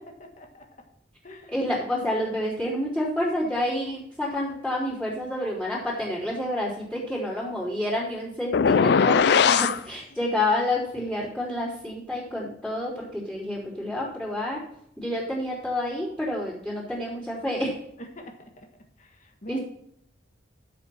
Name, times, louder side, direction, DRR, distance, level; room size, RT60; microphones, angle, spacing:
voice 1, 0.2-0.7 1.2-1.8 18.0-18.7 19.0-19.6, equal, 40° left, 3 dB, 1.6 m, -44 dB
voice 2, 1.5-14.6 15.0-17.8 19.5-19.6, left 1 dB, ahead, -13 dB, 4.0 m, -29 dB
sound 1, 8.5-9.8, left 6 dB, 60° left, 0.4 m, -19 dB
12.5 x 7.7 x 4.4 m, 0.71 s
head